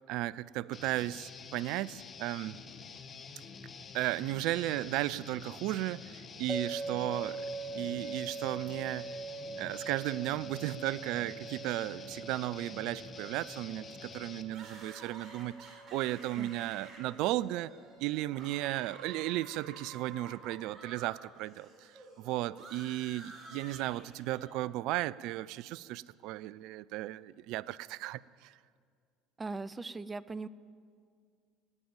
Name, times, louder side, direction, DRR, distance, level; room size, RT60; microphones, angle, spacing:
voice 1, 0.1-2.6 3.9-7.5 7.7-9.2 9.6-17.7 18.0-21.9 22.2-28.5, right 16 dB, 70° right, 21 dB, 0.3 m, -35 dB
Guitar, 0.7-14.4, left 5 dB, 40° left, 1.5 m, -48 dB
sound 1, 6.5-19.6, right 3 dB, 5° left, 1.0 m, -44 dB
sound 2, 14.5-21.1 21.4-24.6, right 2 dB, 40° right, 4.8 m, -52 dB
voice 2, 29.4-30.5, right 3 dB, 20° right, 18 dB, 0.6 m, -39 dB
17.0 x 9.3 x 8.9 m, 2.1 s
hypercardioid pair, 80°, 0 cm